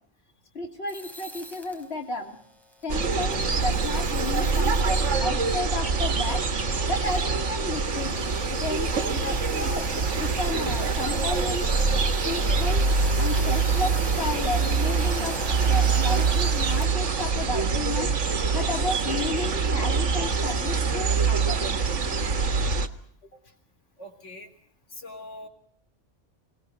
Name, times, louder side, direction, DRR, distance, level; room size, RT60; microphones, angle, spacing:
voice 1, 0.5-2.4 2.8-6.5 6.9-8.2 8.5-11.7 12.2-12.9 13.2-18.2 18.5-21.6, left 2 dB, 60° left, 2 dB, 2.9 m, -32 dB
sound 1, 0.9-16.9, equal, ahead, 4.8 m, -43 dB
sound 2, 2.9-22.9, right 4 dB, 90° right, 1.8 m, -25 dB
voice 2, 24.0-24.5 24.9-25.5, left 1 dB, 85° left, 5 dB, 3.8 m, -42 dB
27.0 x 20.0 x 6.5 m, 0.62 s
omnidirectional pair, 1.2 m